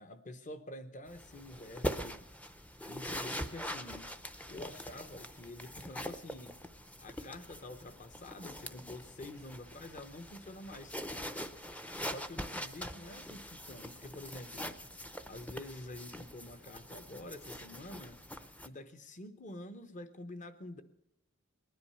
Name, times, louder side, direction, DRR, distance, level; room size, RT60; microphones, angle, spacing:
voice 1, 0.0-2.3 2.8-4.1 4.5-6.6 7.0-11.0 12.1-14.7 15.3-18.2 18.6-20.8, left 1 dB, 35° left, 10 dB, 0.9 m, -48 dB
sound 1, 1.1-18.7, equal, 5° left, 0.6 m, -43 dB
19.5 x 10.5 x 5.7 m, 0.83 s
head